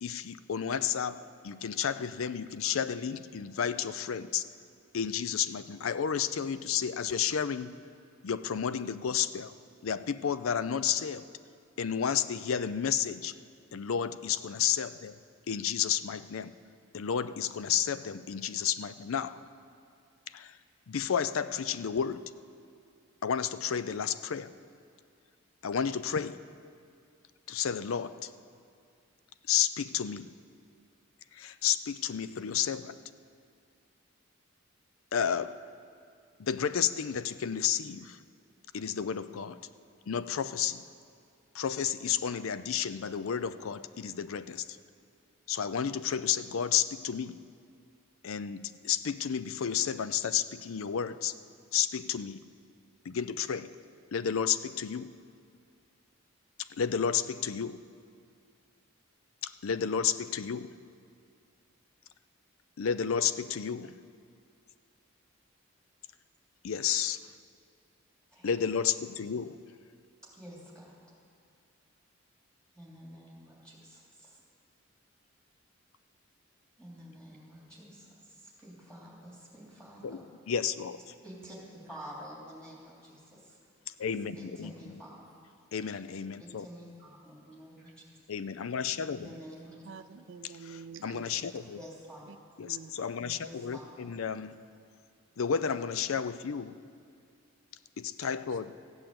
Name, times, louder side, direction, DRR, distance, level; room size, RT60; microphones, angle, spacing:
voice 1, 0.0-4.4 4.9-7.8 8.2-9.5 9.8-11.3 11.8-13.3 13.7-15.1 15.5-16.5 16.9-19.4 20.3-20.5 20.9-22.3 23.2-24.5 25.6-26.4 27.5-28.1 29.5-30.3 31.4-33.0 35.1-35.6 36.4-38.2 38.7-39.6 40.1-40.8 41.5-44.6 45.5-47.4 48.2-51.3 51.7-52.4 53.1-53.7 54.1-55.1 56.8-57.8 59.4-60.7 62.8-63.9 66.6-67.2 68.4-69.6 80.0-80.2 80.5-81.0 84.0-84.7 85.7-86.7 88.3-89.3 91.0-91.8 92.6-94.5 95.4-96.8 98.0-98.8, left 8 dB, 80° left, 0.5 m, -31 dB
voice 2, 70.3-71.2 72.7-74.4 76.8-80.2 81.2-83.6 84.3-85.3 86.4-87.9 89.1-89.8 91.7-92.2 93.4-94.1, equal, 5° left, 3.1 m, -49 dB
voice 3, 89.8-91.3 92.6-93.1 98.2-98.6, right 6 dB, 60° right, 0.4 m, -48 dB
15.0 x 8.8 x 7.7 m
head